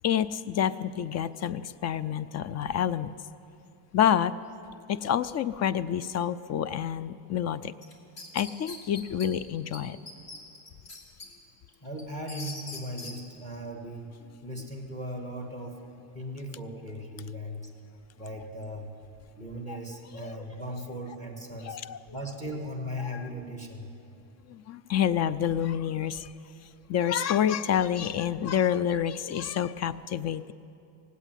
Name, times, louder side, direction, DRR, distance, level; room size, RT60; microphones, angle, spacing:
voice 1, 0.0-3.2 3.9-4.3 4.9-7.7 8.3-10.0 19.7-19.8 20.1-20.4 21.6-22.0 23.0-23.2 24.5-26.3 26.9-30.5, left 9 dB, 40° left, 17 dB, 0.4 m, -28 dB
sound 1, 7.8-9.3 9.7-9.8 10.1-11.3 11.7-13.1, left 2 dB, 55° left, 2.5 m, -42 dB
voice 2, 11.8-14.1 14.4-15.8 16.1-17.7 18.2-18.9 19.4-21.8 22.1-23.9, equal, 15° left, 2 dB, 1.9 m, -38 dB
18.5 x 8.3 x 9.1 m, 2.6 s
cardioid pair, 115°, 44 cm